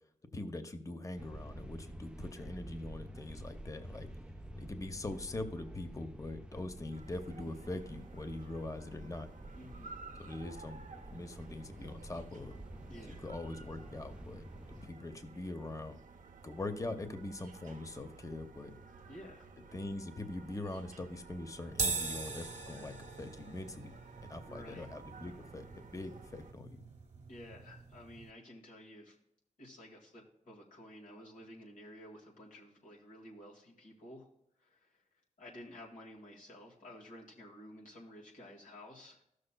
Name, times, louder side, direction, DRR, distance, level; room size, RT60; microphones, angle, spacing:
voice 1, 0.3-4.1 4.6-9.3 10.2-10.8 11.1-12.6 13.1-16.0 16.4-18.7 19.7-24.0 24.2-26.7, left 2 dB, 25° left, 8 dB, 0.7 m, -42 dB
sound 1, 1.2-14.9, right 1 dB, 5° right, 0.4 m, -49 dB
sound 2, 6.9-26.5, right 4 dB, 75° right, 0.7 m, -54 dB
voice 2, 9.5-10.0 12.9-13.3 19.1-19.5 24.4-24.9 27.3-29.2 29.6-34.3 34.6-35.0 35.4-39.2, left 1 dB, 85° left, -3 dB, 1.9 m, -52 dB
sound 3, 21.7-28.3, right 4 dB, 55° right, 1.0 m, -41 dB
14.0 x 6.5 x 2.2 m, 0.77 s
cardioid pair, 65°, 13 cm